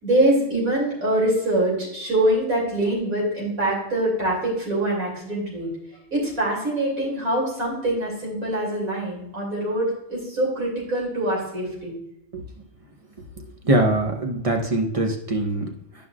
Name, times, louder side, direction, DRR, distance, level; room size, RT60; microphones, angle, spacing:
voice 1, 0.0-5.7 6.1-11.9, right 1 dB, 85° right, -4 dB, 3.4 m, -24 dB
voice 2, 13.6-15.7, right 1 dB, 30° right, 2 dB, 0.8 m, -22 dB
11.0 x 5.4 x 2.4 m, 0.81 s
omnidirectional pair, 1.4 m